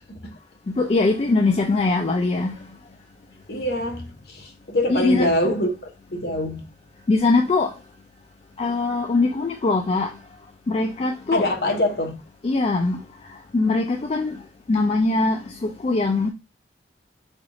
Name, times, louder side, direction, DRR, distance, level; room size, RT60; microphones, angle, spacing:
voice 1, 0.7-2.6 4.9-5.3 7.1-7.7 8.6-10.2 10.7-11.4 12.4-13.0 13.3-14.4 14.7-16.3, left 3 dB, 35° left, 0.3 m, -21 dB
voice 2, 3.5-5.7 6.1-6.7 11.3-12.2, left 1 dB, 60° left, 0.9 m, -24 dB
3.4 x 2.4 x 3.8 m
head